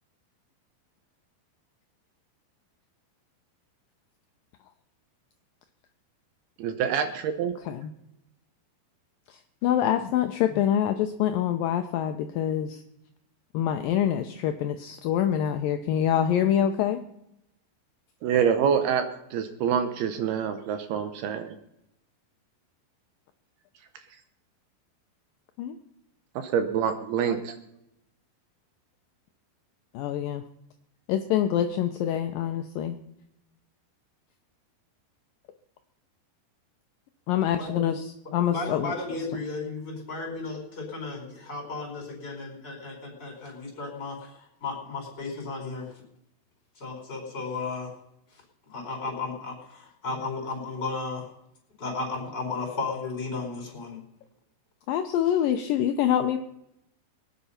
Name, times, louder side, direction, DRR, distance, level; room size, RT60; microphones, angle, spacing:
voice 1, 6.6-7.5 18.2-19.1 19.3-21.6 26.4-27.5, right 7 dB, 75° right, 8 dB, 2.6 m, -26 dB
voice 2, 9.3-12.8 13.5-17.0 25.6-25.8 29.9-30.4 31.1-33.0 37.3-38.9 54.9-56.4, left 10 dB, 85° left, 7 dB, 2.0 m, -25 dB
voice 3, 37.5-38.0 38.5-45.9 46.8-47.9 48.7-51.3 51.8-54.0, left 3 dB, 25° left, 1 dB, 4.9 m, -34 dB
22.5 x 9.3 x 5.7 m, 0.82 s
omnidirectional pair, 5.0 m